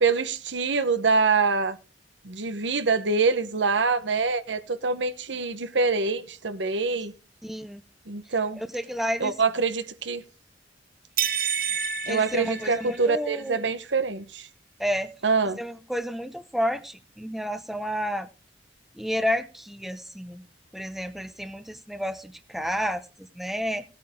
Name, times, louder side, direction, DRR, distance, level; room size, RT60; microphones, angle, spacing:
voice 1, 0.0-1.8 2.2-7.1 8.1-8.6 9.2-10.2 12.1-14.5 15.2-15.6, right 4 dB, 80° right, 1.1 m, -25 dB
voice 2, 7.4-7.8 8.6-9.3 12.1-13.7 14.8-15.1 15.6-18.3 18.9-20.4 20.7-23.8, equal, ahead, 0.7 m, -31 dB
sound 1, 11.2-13.3, right 8 dB, 50° right, 1.4 m, -29 dB
17.5 x 8.7 x 3.7 m
head